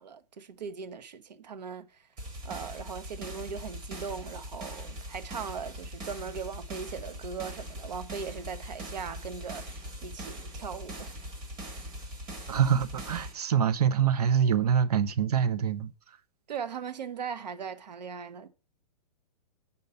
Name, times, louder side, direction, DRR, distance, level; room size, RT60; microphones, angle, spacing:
voice 1, 0.0-2.1 2.4-11.2 16.5-18.5, right 6 dB, 85° right, 1.1 m, -39 dB
sound 1, 2.2-13.3, equal, 20° right, 1.4 m, -41 dB
voice 2, 12.5-15.9, right 8 dB, 65° right, 0.7 m, -25 dB
5.5 x 5.4 x 6.7 m
hypercardioid pair, 170°, 21 cm